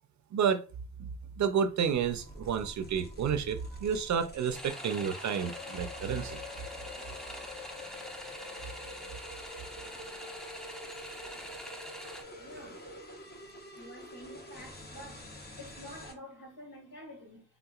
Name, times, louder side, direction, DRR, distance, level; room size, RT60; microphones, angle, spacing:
voice 1, 0.3-0.6 1.0-1.1 1.4-6.4, right 7 dB, 60° right, 0.5 m, -30 dB
sound 1, 1.8-16.1, left 2 dB, 30° left, 1.0 m, -46 dB
sound 2, 4.5-12.2, equal, ahead, 0.5 m, -45 dB
voice 2, 12.4-12.8 13.7-15.2 15.6-17.4, equal, 85° left, 1.8 m, -48 dB
3.6 x 2.8 x 2.4 m
cardioid pair, 95°, 32 cm